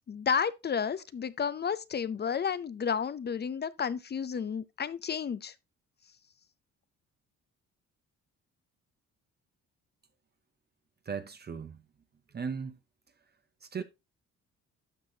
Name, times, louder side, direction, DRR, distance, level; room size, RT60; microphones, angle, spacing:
voice 1, 0.1-5.5, left 7 dB, 35° left, 0.5 m, -31 dB
voice 2, 11.1-11.8 12.3-12.8 13.6-13.8, right 6 dB, 35° right, 0.7 m, -37 dB
12.0 x 6.1 x 2.7 m
cardioid pair, 90°, 30 cm